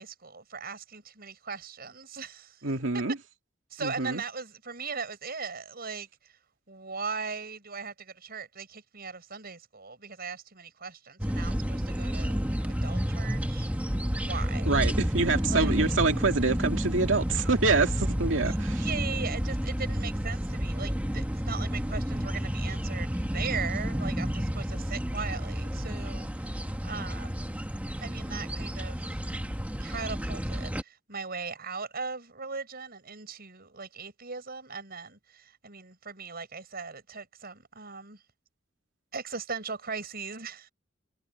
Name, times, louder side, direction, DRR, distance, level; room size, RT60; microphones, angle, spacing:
voice 1, 0.0-2.6 2.9-3.0 3.7-6.1 6.7-13.7 14.3-14.8 15.5-15.8 18.4-27.4 28.0-29.2 29.8-38.2 39.1-40.7, right 5 dB, 50° right, 6.9 m, -39 dB
voice 2, 2.6-3.2 3.8-4.2 14.6-18.8, right 3 dB, 70° right, 2.4 m, -26 dB
sound 1, 11.2-30.8, equal, 10° right, 1.4 m, -30 dB
head